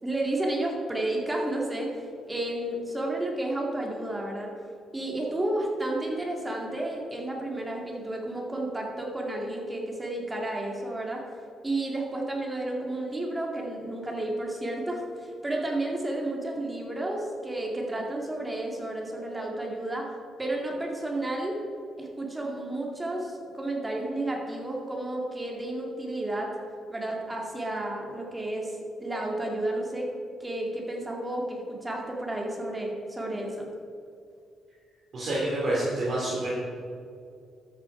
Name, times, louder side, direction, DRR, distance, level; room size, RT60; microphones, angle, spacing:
voice 1, 0.0-4.5 4.9-11.2 11.6-20.1 20.4-21.6 22.0-26.6 26.9-30.1 30.4-33.7, right 1 dB, 15° right, -1 dB, 2.1 m, -31 dB
voice 2, 35.1-36.5, right 1 dB, 50° right, -7 dB, 2.7 m, -28 dB
12.5 x 6.5 x 4.8 m, 2.4 s
cardioid pair, 90°, 0 cm